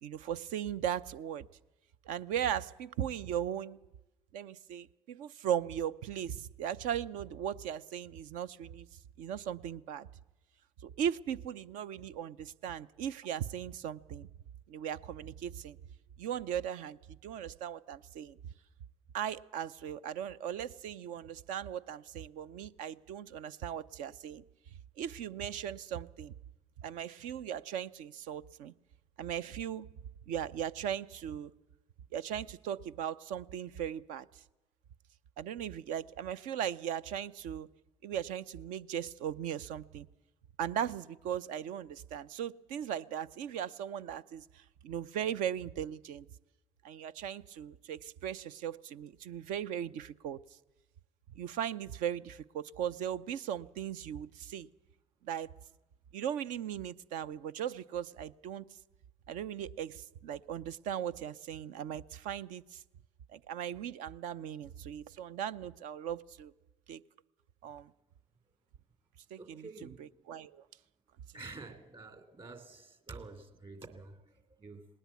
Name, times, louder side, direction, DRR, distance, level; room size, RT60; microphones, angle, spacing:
voice 1, 0.0-1.5 2.1-3.8 4.3-8.9 9.2-10.1 10.8-14.3 14.7-15.8 16.2-18.4 19.1-24.4 25.0-26.3 26.8-28.7 29.2-29.9 30.3-31.5 32.1-34.4 35.4-37.7 38.0-40.1 40.6-46.3 46.8-50.4 51.4-54.7 55.2-55.5 56.1-58.6 59.3-62.8 63.3-66.5 66.9-67.0 67.6-67.9 69.3-70.6, right 9 dB, 60° right, 15 dB, 0.6 m, -38 dB
voice 2, 69.4-70.1 71.3-74.9, right 3 dB, 35° right, 9 dB, 2.8 m, -49 dB
19.0 x 19.0 x 8.3 m, 1.0 s
hypercardioid pair, 60°, 15 cm